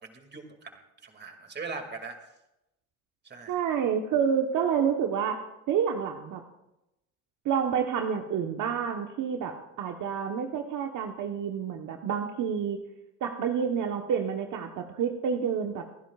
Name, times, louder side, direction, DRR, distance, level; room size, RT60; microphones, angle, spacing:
voice 1, 0.0-2.1 3.2-3.6, right 4 dB, 30° right, 5 dB, 2.4 m, -41 dB
voice 2, 3.5-6.4 7.4-12.8 13.2-15.9, right 7 dB, 60° right, 4 dB, 1.2 m, -29 dB
28.5 x 10.0 x 2.4 m, 0.89 s
supercardioid pair, 95°, 34 cm